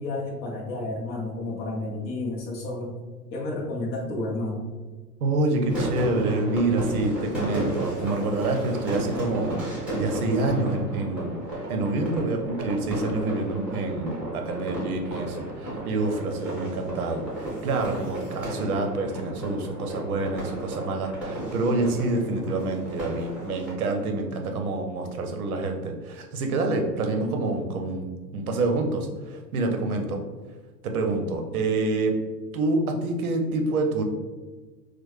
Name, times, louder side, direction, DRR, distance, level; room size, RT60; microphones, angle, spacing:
voice 1, 0.0-3.0 3.3-4.6, left 2 dB, 20° left, 0 dB, 0.6 m, -31 dB
voice 2, 5.2-9.6 9.9-30.2 30.8-32.1 32.5-34.0, right 2 dB, 60° right, 4 dB, 0.7 m, -27 dB
sound 1, 5.7-23.7, right 1 dB, ahead, 1.1 m, -34 dB
4.4 x 2.1 x 3.1 m, 1.3 s
figure-of-eight pair, 100°, 50 cm